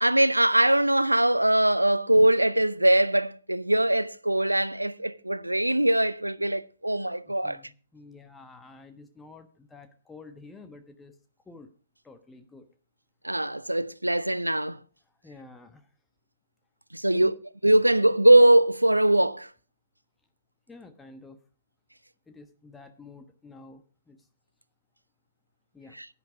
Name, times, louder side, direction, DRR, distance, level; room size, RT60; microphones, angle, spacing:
voice 1, 0.0-7.6 13.2-14.8 16.9-17.3 17.6-19.5 26.0-26.1, right 1 dB, 85° right, 0.5 m, -21 dB
voice 2, 7.3-11.1 11.5-11.7 12.0-12.6 15.2-15.9 17.1-17.4 20.7-21.4 22.3-24.2 25.7-26.0, left 3 dB, 10° left, 1.2 m, -49 dB
10.5 x 9.9 x 4.9 m
figure-of-eight pair, 115°, 0 cm